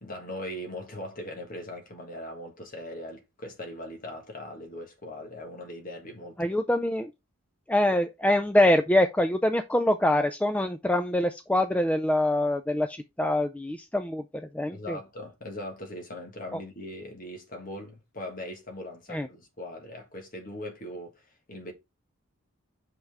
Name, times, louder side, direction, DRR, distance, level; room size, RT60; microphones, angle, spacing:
voice 1, 0.0-6.5 14.6-21.7, left 1 dB, 40° left, 1.6 m, -40 dB
voice 2, 6.4-7.1 7.7-15.0 16.5-16.6 19.1-19.3, left 1 dB, 5° left, 0.3 m, -25 dB
5.8 x 5.4 x 3.5 m
head